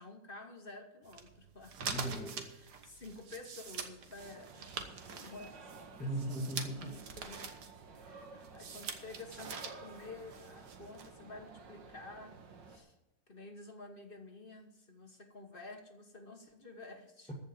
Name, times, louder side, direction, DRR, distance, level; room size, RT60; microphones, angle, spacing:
voice 1, 0.0-1.8 2.4-6.3 6.7-12.4 12.6-13.0 13.3-17.3, left 3 dB, 35° left, 4 dB, 1.4 m, -51 dB
sound 1, 1.0-11.1, right 6 dB, 65° right, 1.8 m, -45 dB
voice 2, 1.8-2.5 5.9-7.0 7.9-8.0 17.3-17.4, right 1 dB, 5° left, -2 dB, 1.5 m, -39 dB
sound 2, 4.2-12.8, right 4 dB, 85° right, 2.0 m, -53 dB
14.5 x 5.4 x 8.7 m, 1.0 s
omnidirectional pair, 1.9 m